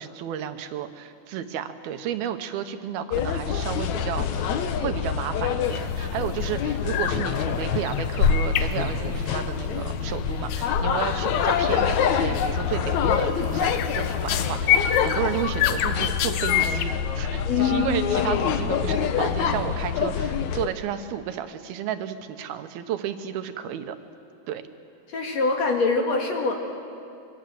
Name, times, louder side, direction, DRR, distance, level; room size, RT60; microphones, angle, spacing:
voice 1, 0.0-24.0 24.5-24.6, right 10 dB, 80° right, 9 dB, 2.9 m, -32 dB
sound 1, 3.1-20.7, left 7 dB, 70° left, 1.8 m, -26 dB
sound 2, 5.7-6.1 6.3-6.6 6.9-7.3 7.6-9.4 10.5-10.7 11.2-11.6 11.9-12.1 12.3-12.7 13.1-16.8, left 10 dB, 90° left, 2.8 m, -28 dB
voice 2, 17.5-18.4 25.1-26.5, left 4 dB, 50° left, 2 dB, 2.9 m, -24 dB
25.5 x 23.0 x 7.8 m, 2.5 s
omnidirectional pair, 4.5 m